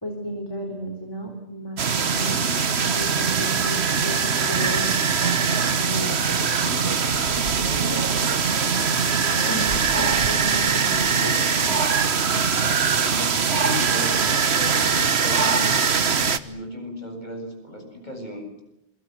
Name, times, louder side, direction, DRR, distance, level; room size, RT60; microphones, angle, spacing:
voice 1, 0.0-2.4 3.0-4.9 5.7-6.9 9.5-9.6 9.9-11.7, equal, 20° left, 1 dB, 4.0 m, -33 dB
sound 1, 1.8-16.4, right 6 dB, 75° right, 1.5 m, -22 dB
voice 2, 7.6-9.0 9.3-9.8 12.8-15.9 16.4-18.6, equal, 45° left, 4 dB, 7.9 m, -36 dB
27.5 x 25.0 x 7.8 m, 0.83 s
omnidirectional pair, 1.1 m